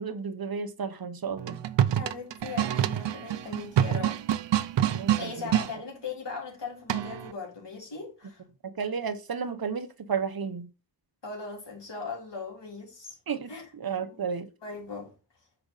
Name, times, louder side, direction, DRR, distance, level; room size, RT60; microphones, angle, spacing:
voice 1, 0.0-1.6 4.9-5.5 8.6-10.7 13.3-14.5, right 6 dB, 55° right, 0.9 m, -33 dB
sound 1, 1.4-5.7 6.9-7.3, right 11 dB, 85° right, 0.6 m, -26 dB
voice 2, 1.9-4.2 5.2-8.4 11.2-13.2 13.5-13.7 14.0-14.2 14.6-15.1, left 4 dB, 85° left, 3.4 m, -39 dB
6.8 x 4.9 x 3.9 m
wide cardioid pair, 110°, 42 cm